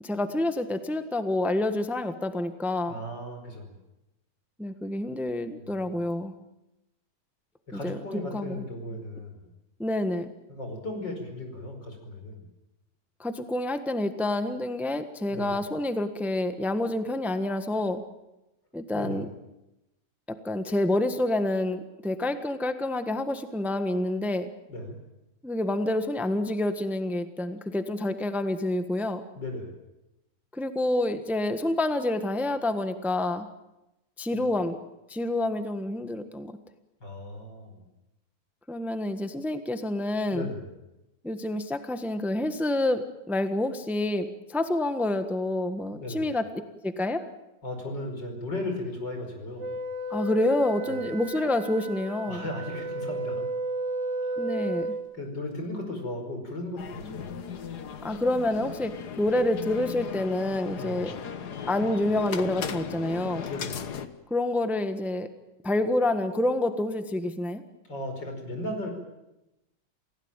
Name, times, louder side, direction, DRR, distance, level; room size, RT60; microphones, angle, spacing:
voice 1, 0.0-3.0 4.6-6.3 7.7-8.0 8.3-8.6 9.8-10.3 13.2-18.0 18.7-19.3 20.3-24.5 25.4-29.2 30.5-33.5 34.2-34.8 35.1-36.5 38.7-40.5 41.2-46.4 46.8-47.2 50.1-52.5 54.4-54.9 58.0-61.1 61.7-63.5 64.3-65.3 65.6-67.6, left 1 dB, ahead, 9 dB, 1.2 m, -28 dB
voice 2, 2.9-3.7 5.5-5.9 7.7-9.5 10.5-12.5 15.3-15.5 18.9-19.3 24.7-25.0 29.4-29.7 34.3-34.5 37.0-37.8 40.3-40.7 45.9-46.3 47.6-49.7 50.9-51.0 52.3-53.5 54.2-54.7 55.1-57.5 60.8-61.0 63.5-63.9 67.8-68.9, left 1 dB, 85° left, 4 dB, 5.9 m, -36 dB
Wind instrument woodwind instrument, 49.6-55.1, right 2 dB, 40° right, 2.1 m, -33 dB
sound 1, 56.8-64.1, left 7 dB, 65° left, 1.8 m, -37 dB
28.0 x 17.0 x 9.0 m, 0.95 s
omnidirectional pair, 1.9 m